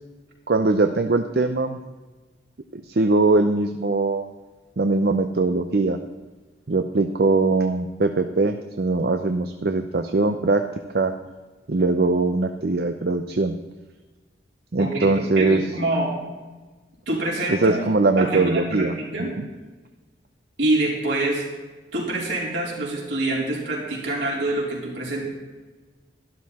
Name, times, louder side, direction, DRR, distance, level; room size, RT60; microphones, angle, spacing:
voice 1, 0.5-1.8 2.7-4.3 4.8-6.0 6.7-10.6 10.9-11.1 11.7-13.6 14.7-15.6 17.5-19.0 19.4-19.5, right 3 dB, 55° right, 7 dB, 0.6 m, -21 dB
voice 2, 14.8-15.1 15.4-16.1 17.1-17.8 18.2-19.3 20.6-21.4 21.9-25.2, right 2 dB, 75° right, -4 dB, 4.4 m, -25 dB
12.5 x 12.0 x 4.2 m, 1.3 s
head